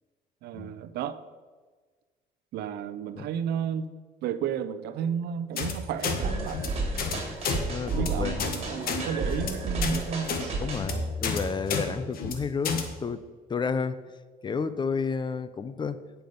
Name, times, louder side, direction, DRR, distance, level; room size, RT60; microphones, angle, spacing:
voice 1, 0.4-1.2 2.5-3.9 4.2-6.6 7.9-10.5, right 8 dB, 75° right, 0.7 m, -32 dB
sound 1, 5.6-5.7 6.0-6.2 6.5-6.7 7.0-7.1 7.4-7.6 7.9-8.1 8.4-8.6 8.8-9.0 9.3-9.5 9.8-10.0 10.3-10.4 10.7-10.9 11.2-11.4 11.7-11.8 12.1-12.3 12.6-12.8, left 6 dB, 60° left, 1.4 m, -30 dB
sound 2, 6.2-11.6, right 2 dB, 40° right, 2.8 m, -32 dB
voice 2, 7.7-8.5 10.6-13.2 13.5-14.0 14.4-16.0, left 5 dB, 25° left, 0.5 m, -31 dB
9.4 x 6.8 x 5.3 m
cardioid pair, 110°, 17 cm